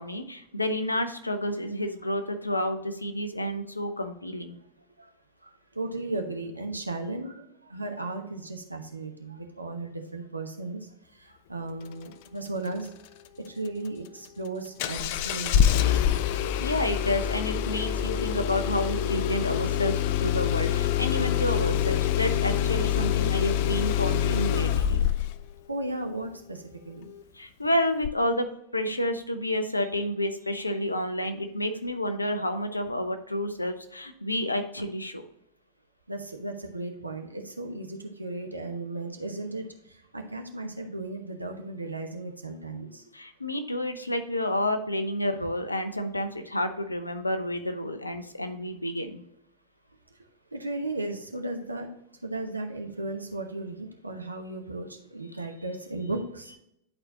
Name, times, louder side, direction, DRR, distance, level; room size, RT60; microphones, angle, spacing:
voice 1, 0.0-4.6 16.6-25.0 27.3-35.2 43.1-49.2, left 1 dB, 85° left, 8 dB, 0.8 m, -30 dB
voice 2, 5.4-10.9 11.1-12.9 13.3-16.0 25.7-27.1 36.1-43.0 45.4-45.5 50.5-51.9 52.2-56.6, right 2 dB, 85° right, 4 dB, 1.0 m, -35 dB
Engine starting, 14.8-25.4 28.0-28.1, left 10 dB, 50° left, 0.4 m, -25 dB
11.0 x 4.4 x 2.8 m, 0.77 s
figure-of-eight pair, 90°, 0 cm